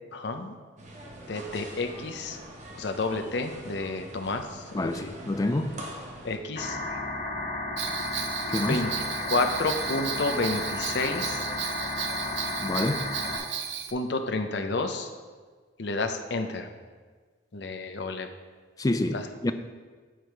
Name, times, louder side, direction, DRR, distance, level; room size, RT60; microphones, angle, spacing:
voice 1, 0.1-0.5 1.3-2.4 2.8-5.1 6.2-6.8 8.7-8.9 9.3-11.4 13.9-15.1 15.8-16.7 17.5-18.3 19.1-19.2, left 3 dB, 65° left, 6 dB, 0.7 m, -30 dB
sound 1, 0.8-6.4, right 1 dB, 40° right, 1.0 m, -44 dB
voice 2, 4.7-5.8 8.5-8.8 12.6-13.1 18.8-19.5, left 2 dB, 20° left, 9 dB, 0.4 m, -27 dB
sound 2, 6.6-13.4, left 2 dB, 50° left, 1.4 m, -33 dB
Bell, 7.8-13.9, right 8 dB, 70° right, 0.6 m, -35 dB
9.1 x 4.9 x 4.6 m, 1.5 s
head